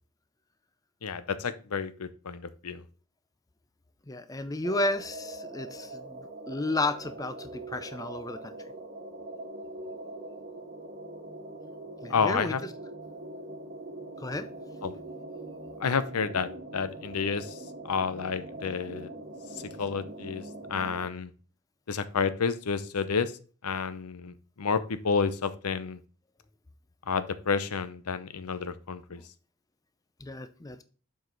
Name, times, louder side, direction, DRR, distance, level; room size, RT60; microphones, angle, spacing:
voice 1, 1.0-2.8 12.1-12.6 14.8-15.0 15.8-17.5 17.8-19.1 19.8-20.4 20.7-21.3 21.9-23.3 23.6-26.0 27.1-29.2, left 5 dB, 90° left, 13 dB, 0.7 m, -30 dB
voice 2, 4.1-8.5 12.0-12.5 14.2-14.5 30.2-30.8, left 2 dB, 15° left, 11 dB, 0.5 m, -32 dB
sound 1, 4.6-21.1, right 2 dB, 40° right, 1.4 m, -42 dB
7.6 x 4.8 x 3.9 m, 0.38 s
head